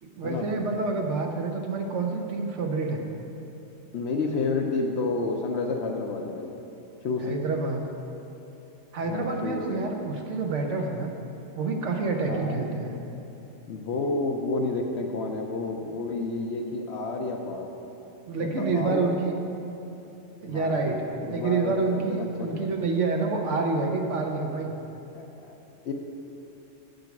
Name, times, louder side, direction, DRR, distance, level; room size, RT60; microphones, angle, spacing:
voice 1, 0.0-3.0 7.2-7.9 8.9-11.1 11.5-12.9 18.3-19.3 20.4-21.0 21.3-24.8, right 3 dB, 80° right, 2 dB, 1.1 m, -28 dB
voice 2, 3.9-6.5 7.0-7.3 9.0-9.8 12.3-12.6 13.7-17.7 18.4-19.0 20.4-22.8 25.1-25.2 25.9-26.0, left 3 dB, 70° left, 2 dB, 0.9 m, -30 dB
8.1 x 5.2 x 5.9 m, 2.9 s
omnidirectional pair, 1.2 m